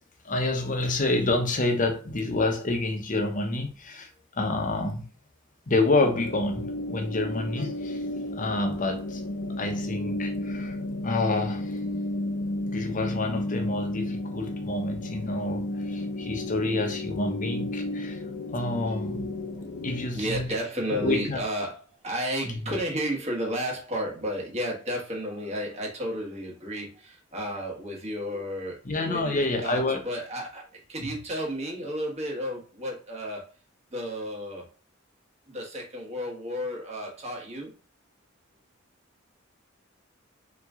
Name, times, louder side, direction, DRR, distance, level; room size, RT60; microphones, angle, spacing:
voice 1, 0.2-4.1 4.4-5.1 5.7-8.0 8.3-9.2 9.5-10.8 11.0-11.7 12.7-18.3 18.5-19.3 19.8-20.5 20.9-21.4 22.5-22.6 28.8-30.0 31.0-31.1, left 2 dB, 40° left, 0.8 m, -28 dB
sound 1, 6.0-20.1, left 1 dB, 65° left, 0.5 m, -33 dB
voice 2, 20.1-33.4 33.9-34.7 35.5-37.7, equal, 30° right, 1.3 m, -32 dB
3.7 x 3.0 x 3.6 m
head